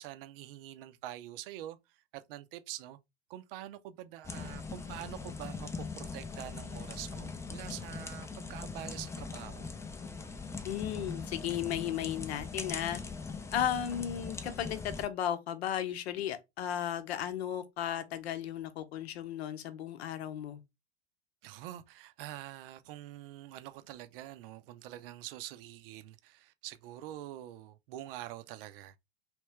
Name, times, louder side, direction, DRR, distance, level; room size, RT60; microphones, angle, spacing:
voice 1, 0.0-3.0 3.3-9.7 21.4-28.9, right 14 dB, 55° right, 0.6 m, -45 dB
sound 1, 4.2-15.1, left 4 dB, 10° left, 0.4 m, -41 dB
voice 2, 10.6-13.0 13.5-20.6, left 10 dB, 70° left, 0.8 m, -35 dB
3.2 x 3.0 x 3.2 m
hypercardioid pair, 90°, 33 cm